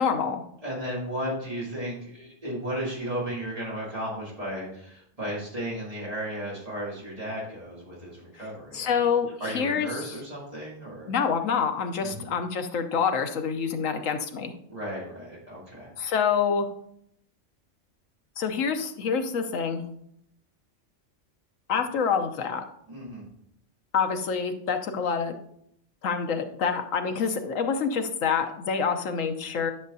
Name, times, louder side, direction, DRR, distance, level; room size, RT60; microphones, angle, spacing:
voice 1, 0.0-0.4 8.7-9.3 9.5-10.1 11.1-14.5 16.0-16.7 18.4-19.9 21.7-22.6 23.9-25.3 26.0-29.7, left 6 dB, 90° left, 6 dB, 1.2 m, -26 dB
voice 2, 0.6-9.1 9.4-11.1 12.0-12.2 14.7-15.9 22.9-23.3, equal, 30° right, -6 dB, 2.8 m, -34 dB
11.0 x 6.3 x 2.7 m, 0.71 s
omnidirectional pair, 1.3 m